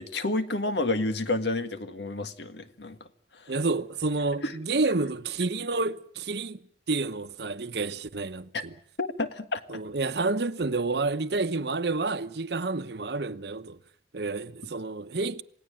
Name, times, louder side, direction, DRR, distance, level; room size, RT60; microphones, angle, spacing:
voice 1, 0.0-3.0 4.4-4.5 8.5-8.6 9.0-9.6, left 2 dB, 75° left, 1.8 m, -29 dB
voice 2, 3.5-6.6 6.9-8.7 9.7-13.8 14.1-15.4, right 3 dB, 65° right, 1.0 m, -29 dB
27.5 x 18.0 x 8.9 m
head